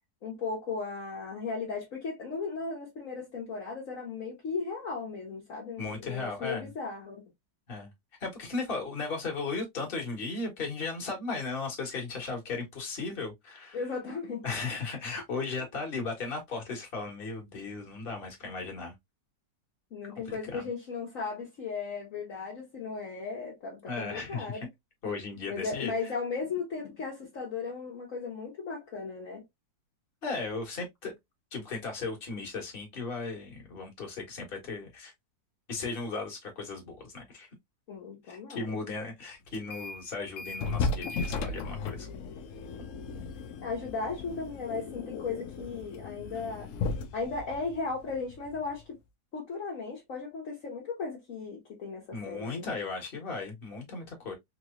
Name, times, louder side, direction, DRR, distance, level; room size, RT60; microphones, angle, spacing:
voice 1, 0.2-7.2 13.7-14.5 19.9-24.7 25.5-29.4 37.9-38.8 43.6-46.7 47.1-49.0 49.3-52.7, left 4 dB, 50° left, 1.3 m, -36 dB
voice 2, 5.8-6.7 7.7-7.9 8.2-13.8 14.4-18.9 20.2-20.7 23.9-24.7 25.0-25.9 30.2-31.1 31.5-35.1 35.7-37.5 38.2-42.1 52.1-54.3, left 3 dB, 35° left, 1.4 m, -36 dB
sound 1, 39.5-40.0 40.4-48.8, left 4 dB, 90° left, 0.7 m, -36 dB
3.8 x 3.0 x 2.4 m
omnidirectional pair, 2.0 m